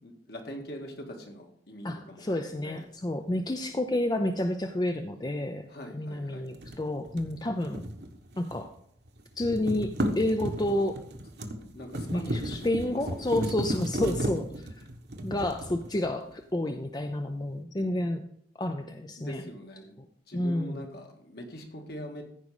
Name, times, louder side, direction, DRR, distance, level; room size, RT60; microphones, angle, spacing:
voice 1, 0.0-2.8 5.7-6.5 11.7-13.5 19.2-22.2, equal, 60° left, 2 dB, 1.9 m, -43 dB
voice 2, 1.8-5.7 5.9-7.9 8.4-8.7 9.4-11.0 12.1-14.9 15.2-18.3 18.6-19.4 20.3-20.8, left 1 dB, 20° left, 6 dB, 0.5 m, -30 dB
sound 1, 6.5-8.8 9.1-16.4, right 1 dB, 60° right, 1.2 m, -35 dB
14.5 x 5.2 x 4.9 m, 0.69 s
head